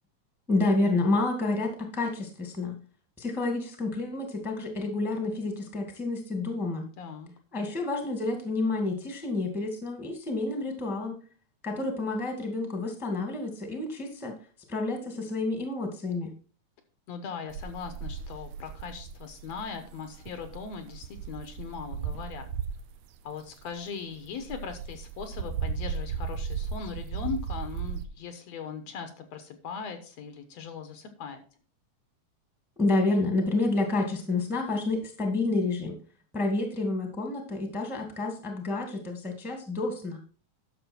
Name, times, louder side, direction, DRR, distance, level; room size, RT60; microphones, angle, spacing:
voice 1, 0.5-2.8 3.2-6.8 7.5-11.2 11.6-14.4 14.7-16.3 32.8-35.9 36.3-40.2, left 2 dB, ahead, 4 dB, 1.3 m, -29 dB
voice 2, 7.0-7.3 17.1-22.5 23.2-31.4, left 6 dB, 70° left, 8 dB, 2.1 m, -39 dB
sound 1, 17.5-23.0 23.5-28.0, right 7 dB, 75° right, 1.8 m, -36 dB
11.0 x 6.7 x 4.4 m, 0.37 s
omnidirectional pair, 3.4 m